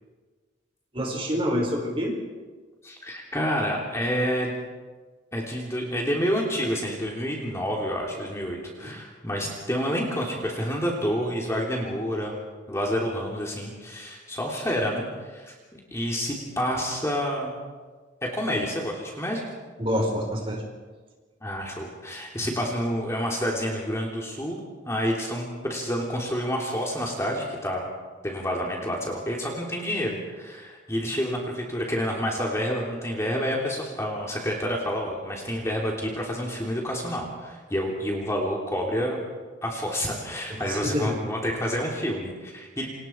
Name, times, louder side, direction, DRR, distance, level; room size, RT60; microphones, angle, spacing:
voice 1, 0.9-2.2 8.7-8.9 19.8-20.6 40.5-41.2, equal, 25° right, 1 dB, 4.8 m, -27 dB
voice 2, 2.8-4.5 5.3-12.4 12.7-15.5 15.9-17.6 18.2-19.4 21.4-24.6 24.8-27.9 28.2-39.2 39.6-42.9, equal, 15° left, -1 dB, 3.2 m, -28 dB
29.0 x 26.5 x 4.6 m, 1.4 s
head